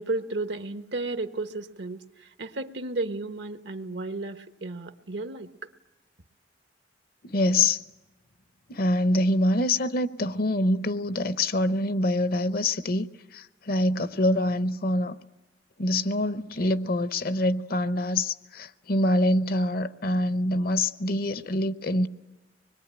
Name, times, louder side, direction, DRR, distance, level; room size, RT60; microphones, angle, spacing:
voice 1, 0.0-5.5, right 2 dB, 75° right, 1.2 m, -33 dB
voice 2, 7.2-7.8 8.7-13.1 13.3-15.2 15.8-22.1, left 1 dB, 55° left, 0.8 m, -25 dB
25.5 x 21.5 x 8.9 m
head